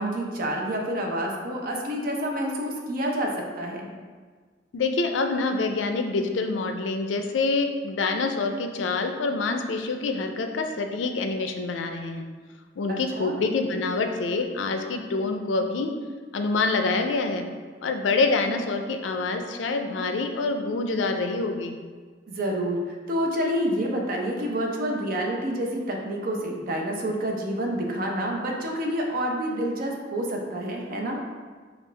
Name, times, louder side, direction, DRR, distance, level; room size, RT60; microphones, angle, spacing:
voice 1, 0.0-3.9 12.9-13.4 22.3-31.2, equal, 50° right, 0 dB, 0.6 m, -28 dB
voice 2, 4.7-12.3 12.8-15.9 16.3-17.5 17.8-21.8, left 3 dB, 90° left, 5 dB, 0.4 m, -26 dB
5.3 x 2.4 x 3.3 m, 1.5 s
head